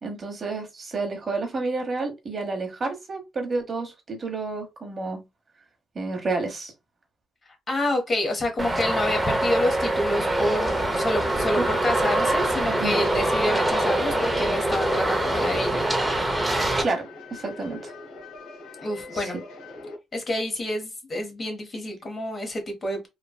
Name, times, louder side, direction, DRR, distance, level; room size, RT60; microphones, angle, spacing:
voice 1, 0.0-5.2 5.9-6.7 11.5-11.6 12.7-13.0 16.8-17.9, right 3 dB, 40° right, 1.0 m, -30 dB
voice 2, 7.7-15.9 18.8-19.4 20.1-23.1, left 1 dB, 35° left, 1.2 m, -28 dB
Traffic noise roadway noise, 8.6-16.8, right 1 dB, 15° right, 0.8 m, -24 dB
sound 1, 10.3-20.0, left 3 dB, 85° left, 0.8 m, -41 dB
3.2 x 2.3 x 2.3 m
cardioid pair, 80°, 0 cm